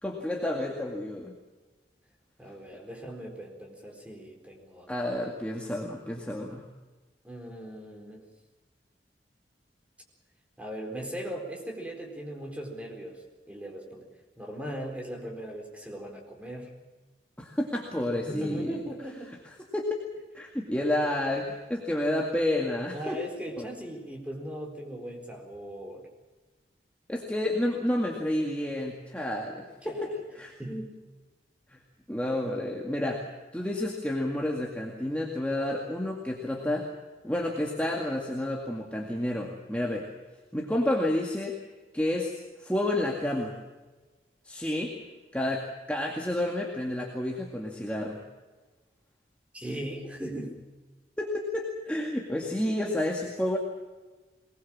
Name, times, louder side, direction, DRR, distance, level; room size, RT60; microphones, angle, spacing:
voice 1, 0.0-1.3 4.9-6.7 17.4-18.8 19.7-19.9 20.3-23.2 23.6-23.7 27.1-30.1 30.4-30.5 31.7-31.8 32.1-33.3 33.5-36.9 37.2-40.1 40.5-41.6 41.9-42.3 42.6-43.6 44.4-44.9 45.3-48.2 51.2-53.6, left 1 dB, 10° left, -1 dB, 2.1 m, -30 dB
voice 2, 2.4-4.9 7.2-8.3 10.6-14.1 14.4-16.7 18.1-19.3 22.9-26.1 29.8-30.1 30.6-30.9 49.5-50.6, right 1 dB, 10° right, 0 dB, 4.3 m, -39 dB
22.5 x 20.0 x 7.4 m, 1.3 s
head